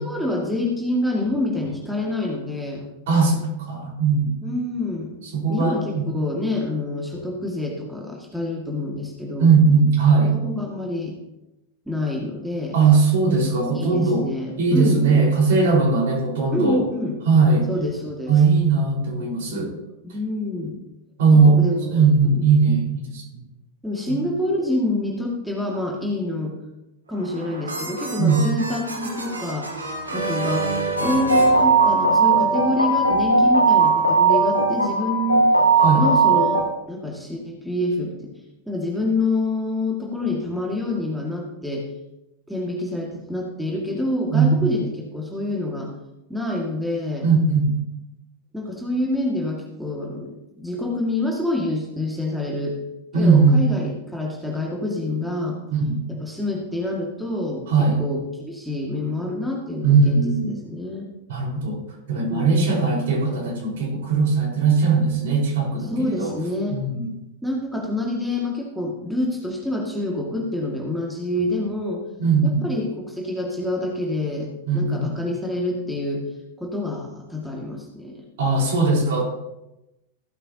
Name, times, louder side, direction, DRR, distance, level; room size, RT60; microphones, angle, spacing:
voice 1, 0.0-2.8 4.4-5.1 5.5-9.5 10.3-11.2 11.9-12.8 13.7-15.2 16.5-17.2 17.7-18.4 20.0-20.8 21.5-22.1 22.3-22.4 23.8-26.5 27.1-29.7 30.1-35.5 36.0-38.3 38.7-41.9 42.5-45.9 46.3-47.3 48.5-52.8 53.1-55.6 56.1-61.1 62.3-62.7 65.8-66.8 67.4-72.0 72.4-74.5 74.7-76.3 76.6-78.2, left 1 dB, ahead, -2 dB, 2.0 m, -27 dB
voice 2, 3.1-4.3 5.3-6.0 9.4-10.4 12.7-14.3 14.6-16.8 17.2-17.7 18.3-19.7 21.2-21.6 21.9-23.4 24.1-24.2 28.2-28.5 35.8-36.0 44.3-44.7 47.2-47.7 53.1-53.6 55.7-56.0 57.7-58.0 59.8-60.6 61.3-61.8 62.1-66.3 66.7-67.2 72.2-72.7 74.7-75.1 78.4-79.2, right 4 dB, 55° right, -2 dB, 4.7 m, -19 dB
sound 1, 27.1-32.4, right 3 dB, 75° right, 2.4 m, -29 dB
sound 2, 31.0-36.6, right 3 dB, 85° left, 1.3 m, -18 dB
15.5 x 11.0 x 2.9 m, 0.94 s
figure-of-eight pair, 90°, 0 cm